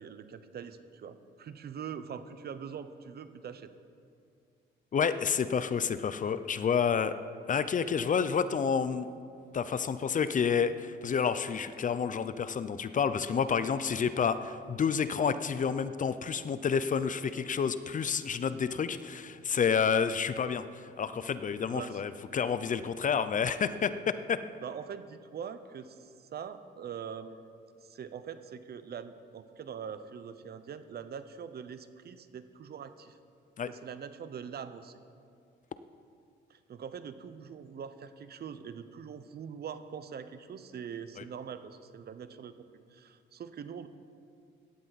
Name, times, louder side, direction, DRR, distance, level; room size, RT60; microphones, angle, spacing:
voice 1, 0.0-3.7 21.7-22.0 23.0-23.3 24.6-33.2 33.6-35.0 36.5-43.9, right 7 dB, 55° right, 11 dB, 0.9 m, -43 dB
voice 2, 4.9-7.1 7.5-9.1 9.5-24.4 33.6-33.7 41.2-41.3, left 6 dB, 40° left, 13 dB, 0.6 m, -29 dB
17.0 x 12.5 x 4.1 m, 2.3 s
cardioid pair, 90°, 20 cm